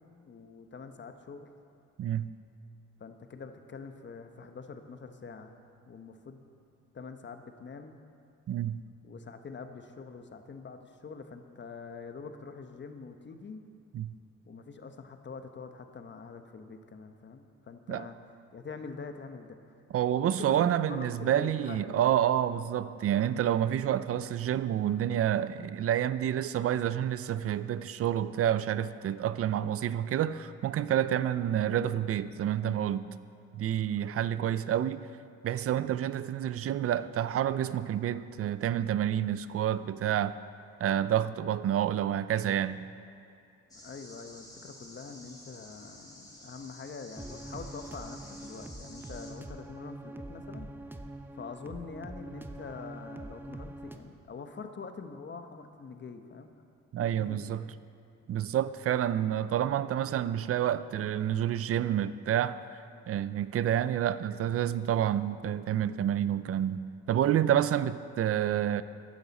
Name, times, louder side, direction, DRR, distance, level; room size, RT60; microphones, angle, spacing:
voice 1, 0.3-1.5 3.0-5.5 5.9-6.4 6.9-8.0 9.0-13.6 14.5-18.2 18.5-19.6 20.2-22.2 31.1-31.5 43.7-50.7 51.3-56.5 57.2-57.5, left 5 dB, 40° left, 7 dB, 1.0 m, -45 dB
voice 2, 2.0-2.3 8.5-8.8 13.9-14.1 17.9-18.1 19.9-33.1 33.5-35.1 35.4-40.4 40.8-42.9 56.9-57.7 58.3-68.8, right 10 dB, 50° right, 15 dB, 0.5 m, -29 dB
sound 1, 43.7-49.3, left 1 dB, 10° left, 2.6 m, -51 dB
sound 2, 47.2-54.0, right 1 dB, 5° right, 0.7 m, -44 dB
15.0 x 10.5 x 4.2 m, 2.5 s
cardioid pair, 90°, 30 cm